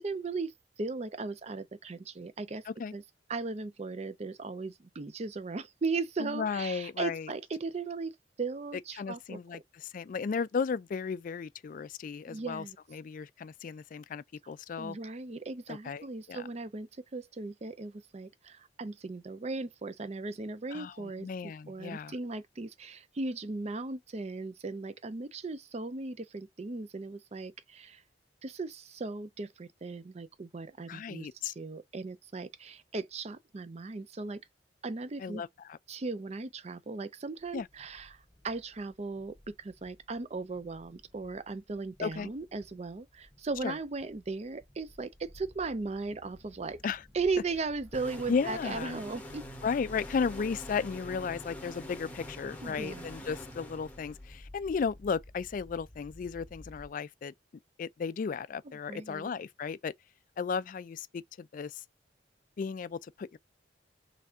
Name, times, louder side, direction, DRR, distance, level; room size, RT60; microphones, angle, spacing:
voice 1, 0.0-2.6 2.9-3.0 3.3-9.6 12.3-12.8 14.8-28.0 28.4-34.4 34.8-35.4 35.9-46.8 47.1-49.5 52.6-53.1 58.9-59.3, right 3 dB, 35° right, 0.5 m, -37 dB
voice 2, 6.2-7.3 9.0-12.6 12.9-15.0 15.7-16.5 20.7-22.1 30.9-31.5 35.2-35.8 37.5-37.7 42.0-42.3 43.6-43.8 46.8-47.0 48.3-49.0 49.6-57.3 57.8-59.9 60.4-61.8 62.6-63.4, left 5 dB, 45° left, 0.3 m, -35 dB
sound 1, 37.4-56.9, left 1 dB, 15° right, 2.3 m, -54 dB
sound 2, 47.9-54.4, left 1 dB, 10° left, 0.9 m, -45 dB
4.0 x 3.3 x 3.6 m
head